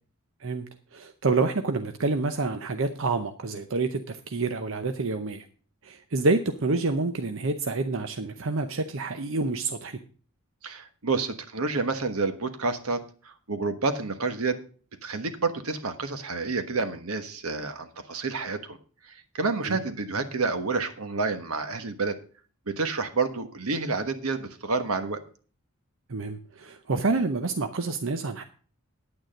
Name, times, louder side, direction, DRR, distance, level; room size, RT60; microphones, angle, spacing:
voice 1, 0.9-5.4 5.8-10.0 19.6-19.8 26.1-28.4, right 3 dB, 65° right, 7 dB, 0.7 m, -28 dB
voice 2, 10.6-14.6 15.0-18.8 19.3-22.2 22.7-25.2, right 4 dB, 85° right, 9 dB, 1.3 m, -29 dB
9.5 x 9.1 x 5.2 m, 0.41 s
head